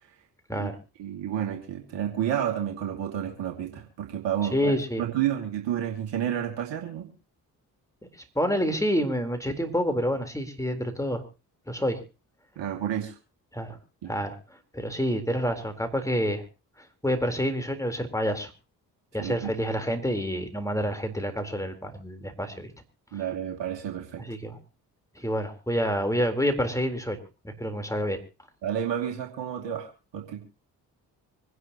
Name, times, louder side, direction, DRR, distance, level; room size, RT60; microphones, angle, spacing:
voice 1, 1.0-7.1 12.6-13.1 14.0-14.1 19.2-19.5 23.1-24.2 28.6-30.5, right 10 dB, 70° right, 2 dB, 2.6 m, -30 dB
voice 2, 4.5-5.0 8.4-11.2 11.7-12.0 13.5-13.7 14.1-14.4 14.7-16.4 17.0-18.5 19.1-22.7 24.3-24.6 25.2-27.2 27.4-28.2, equal, 5° left, 6 dB, 4.0 m, -28 dB
25.0 x 11.0 x 3.0 m, 0.32 s
hypercardioid pair, 45°, 46 cm